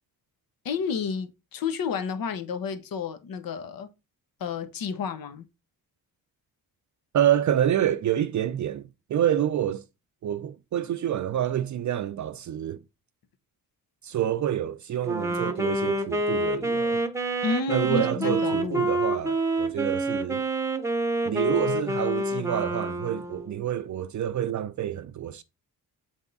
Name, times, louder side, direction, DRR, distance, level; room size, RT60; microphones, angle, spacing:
voice 1, 0.6-3.9 4.4-5.4 17.4-18.9, left 5 dB, 70° left, 0.9 m, -30 dB
voice 2, 7.1-9.8 10.2-12.8 14.0-17.0 17.7-20.5 21.2-25.4, right 11 dB, 55° right, 0.4 m, -27 dB
Wind instrument woodwind instrument, 15.0-23.7, right 2 dB, 10° right, 0.7 m, -27 dB
8.2 x 3.5 x 3.9 m
cardioid pair, 120°, 37 cm